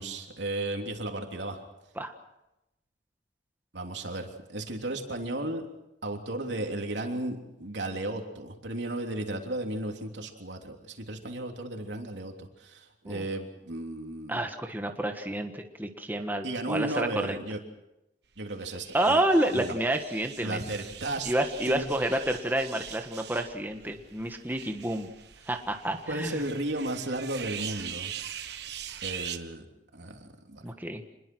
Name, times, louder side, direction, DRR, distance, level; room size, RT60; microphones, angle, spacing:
voice 1, 0.0-1.6 3.7-5.7 6.0-14.4 16.4-17.6 18.4-19.2 19.5-19.8 20.4-21.3 21.6-21.9 26.1-28.1 29.0-29.6 29.9-30.6, right 1 dB, 85° right, 3 dB, 3.3 m, -34 dB
voice 2, 14.3-17.4 18.9-20.6 21.2-25.1 25.5-26.4 30.6-31.0, right 1 dB, 10° right, 5 dB, 1.5 m, -29 dB
sound 1, 18.5-29.4, right 9 dB, 70° right, 1.3 m, -42 dB
26.5 x 21.5 x 6.3 m, 0.91 s
head